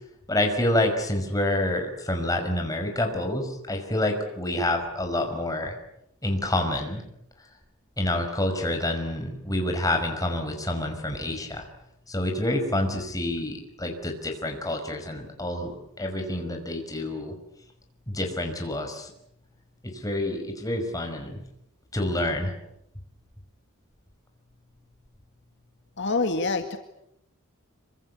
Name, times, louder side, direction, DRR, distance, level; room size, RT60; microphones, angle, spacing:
voice 1, 0.3-5.8 6.2-7.0 8.0-11.6 12.1-17.3 18.1-19.1 19.8-21.4 21.9-22.5, left 1 dB, 15° left, 4 dB, 5.4 m, -28 dB
voice 2, 26.0-26.8, left 3 dB, 55° left, 6 dB, 2.0 m, -26 dB
27.0 x 25.0 x 8.4 m, 0.79 s
head